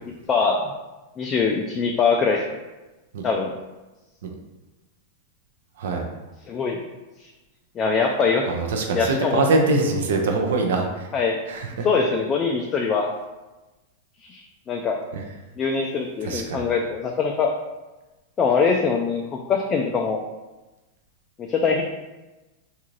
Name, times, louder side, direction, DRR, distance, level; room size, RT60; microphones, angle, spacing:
voice 1, 0.3-0.6 1.2-2.4 3.2-3.5 6.5-6.8 7.2-7.3 7.8-8.4 8.9-9.4 11.1-11.4 11.8-13.1 14.2-15.0 15.6-17.5 18.4-19.2 19.5-20.2 21.4-21.8, left 5 dB, 30° left, 1 dB, 0.3 m, -22 dB
voice 2, 8.5-11.1 11.5-11.9 15.1-15.2 16.2-16.7, right 3 dB, 70° right, 2 dB, 0.5 m, -23 dB
2.7 x 2.4 x 3.0 m, 1.1 s
hypercardioid pair, 105°, 0 cm